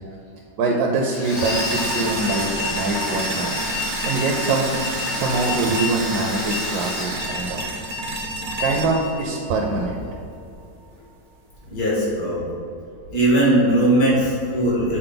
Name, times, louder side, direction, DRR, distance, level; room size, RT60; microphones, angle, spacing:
voice 1, 0.6-3.6 4.0-4.8 5.1-7.6 8.6-10.0, right 3 dB, 75° right, 0 dB, 1.2 m, -23 dB
Domestic sounds home sounds, 1.1-7.9, left 1 dB, 90° left, 2.1 m, -31 dB
sound 1, 1.4-10.4, equal, 55° right, 0.5 m, -29 dB
voice 2, 11.7-12.4 13.1-15.0, right 1 dB, 65° left, -5 dB, 2.2 m, -19 dB
7.8 x 4.2 x 3.9 m, 2.5 s
omnidirectional pair, 1.7 m